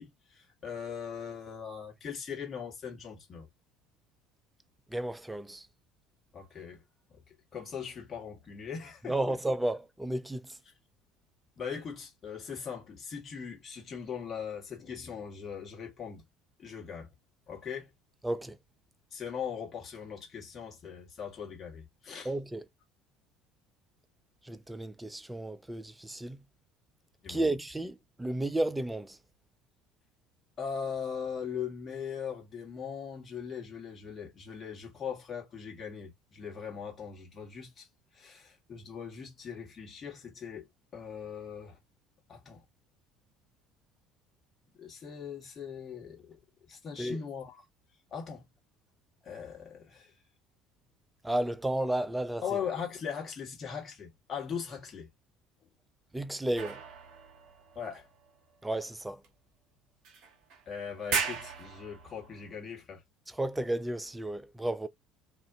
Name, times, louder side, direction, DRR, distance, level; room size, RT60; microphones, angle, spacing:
voice 1, 0.0-3.5 6.3-6.8 7.1-9.4 11.6-16.2 16.6-17.1 17.5-17.9 19.1-22.3 27.2-27.5 30.6-37.9 38.1-41.8 42.3-42.6 44.8-46.4 46.7-47.6 48.1-48.4 49.2-50.1 52.4-55.1 57.7-58.1 60.7-63.0, left 7 dB, 35° left, 1.2 m, -40 dB
voice 2, 4.9-5.7 9.0-10.6 18.2-18.6 22.2-22.7 24.4-26.4 27.3-29.2 47.0-47.2 51.2-52.4 56.1-56.8 58.6-59.2 63.3-64.9, right 1 dB, 10° right, 0.3 m, -32 dB
sound 1, 56.6-58.5 59.2-59.3 60.0-60.6 61.0-62.6, right 6 dB, 55° right, 0.7 m, -37 dB
2.4 x 2.1 x 2.5 m
figure-of-eight pair, 60°, 0 cm